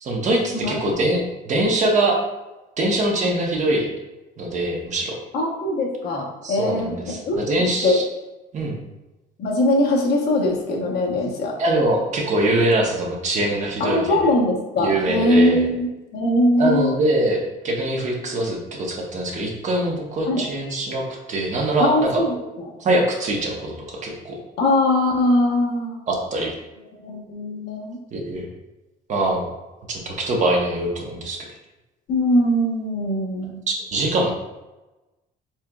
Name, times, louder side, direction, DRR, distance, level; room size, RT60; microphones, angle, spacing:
voice 1, 0.0-2.2 2.8-3.9 4.4-5.2 6.4-8.0 8.5-8.8 11.6-14.3 14.8-15.7 16.6-22.2 22.8-24.4 26.1-26.5 28.1-28.5 29.1-29.5 29.9-31.5 33.7-34.3, right 1 dB, 45° right, -1 dB, 0.9 m, -23 dB
voice 2, 5.3-6.9 7.2-8.0 9.4-11.5 13.8-16.9 20.3-20.4 21.8-22.7 24.6-26.0 26.9-28.0 32.1-33.6, left 1 dB, 70° left, -1 dB, 1.0 m, -21 dB
4.4 x 3.4 x 2.3 m, 1.1 s
cardioid pair, 110°, 17 cm